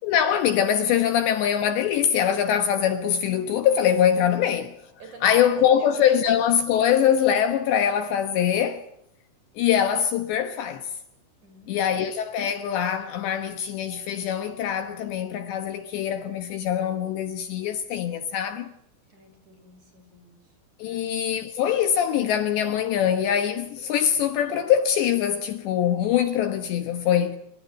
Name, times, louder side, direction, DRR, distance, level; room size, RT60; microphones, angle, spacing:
voice 1, 0.0-4.7 5.2-8.8 9.6-10.9 11.7-18.7 20.8-27.4, left 9 dB, 70° left, 3.2 m, -23 dB
voice 2, 5.0-6.3 6.7-6.8 11.4-12.0 19.1-20.5 20.8-21.2, right 2 dB, 35° right, 6.7 m, -49 dB
25.5 x 25.0 x 9.3 m
omnidirectional pair, 5.8 m